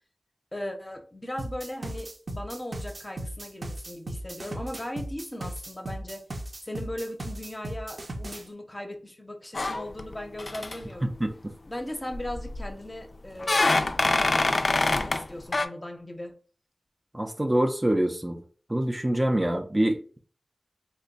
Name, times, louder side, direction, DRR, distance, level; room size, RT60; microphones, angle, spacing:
voice 1, 0.5-6.2 6.6-11.1 11.7-16.3, left 1 dB, 20° left, 0.6 m, -38 dB
sound 1, 1.4-8.4, right 1 dB, 60° right, 0.7 m, -37 dB
sound 2, 9.5-10.1 10.4-10.8 12.1-12.7 13.4-15.2 15.5-15.7, left 2 dB, 55° left, 0.3 m, -25 dB
voice 2, 11.0-11.5 17.1-18.4 18.7-20.2, right 1 dB, 20° right, 0.4 m, -25 dB
3.1 x 2.2 x 3.9 m
wide cardioid pair, 70°, 0 cm